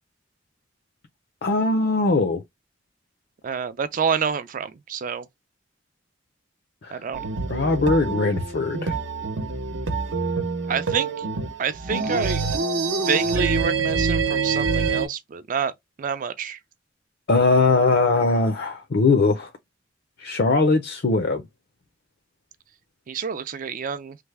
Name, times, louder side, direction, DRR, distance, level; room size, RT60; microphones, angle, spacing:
voice 1, 1.4-2.4 6.8-7.0 7.5-8.9 17.3-19.5 20.2-21.4, left 3 dB, 60° left, 0.5 m, -20 dB
voice 2, 3.4-5.3 6.9-7.2 10.7-11.3 11.6-12.4 13.0-15.7 16.0-16.6 23.1-24.2, right 6 dB, 45° right, 0.4 m, -27 dB
sound 1, 7.1-15.1, right 4 dB, 80° right, 0.8 m, -26 dB
3.3 x 2.1 x 3.3 m
head